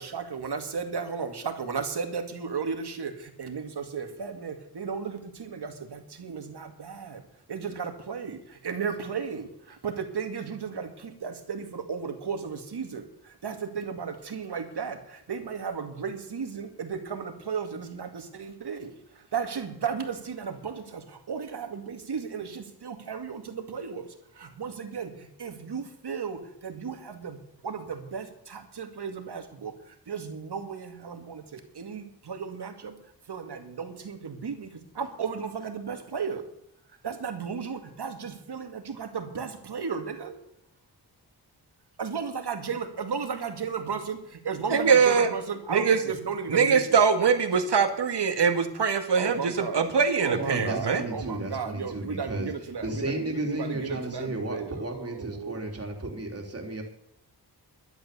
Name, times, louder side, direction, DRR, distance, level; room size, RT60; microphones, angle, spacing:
voice 1, 0.0-7.2 7.5-24.1 24.4-29.7 30.1-32.9 33.3-36.4 37.0-40.4 42.0-44.2 44.4-46.9 49.2-49.9 50.2-55.6, right 6 dB, 70° right, 6 dB, 2.3 m, -35 dB
voice 2, 44.7-45.3 45.7-46.0 46.5-51.0, right 6 dB, 90° right, 7 dB, 2.0 m, -22 dB
voice 3, 50.4-52.5 52.8-56.8, right 2 dB, 35° right, 2 dB, 3.4 m, -33 dB
12.0 x 11.5 x 6.8 m, 0.76 s
wide cardioid pair, 120°, 41 cm